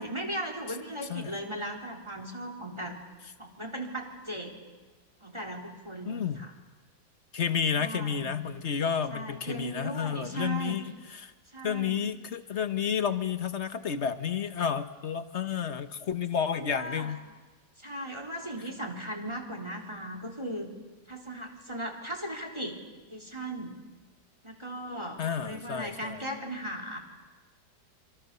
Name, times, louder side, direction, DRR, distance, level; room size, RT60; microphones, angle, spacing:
voice 1, 0.0-3.0 3.4-4.5 5.2-6.5 7.7-8.3 9.1-10.8 11.5-12.0 16.5-17.1 17.8-20.7 21.1-22.8 23.1-23.7 24.4-27.0, right 1 dB, 15° right, -1 dB, 3.9 m, -37 dB
voice 2, 6.0-6.4 7.3-11.3 11.6-17.2 25.2-26.2, left 7 dB, 45° left, 9 dB, 1.3 m, -31 dB
28.0 x 25.5 x 6.9 m, 1.3 s
omnidirectional pair, 1.8 m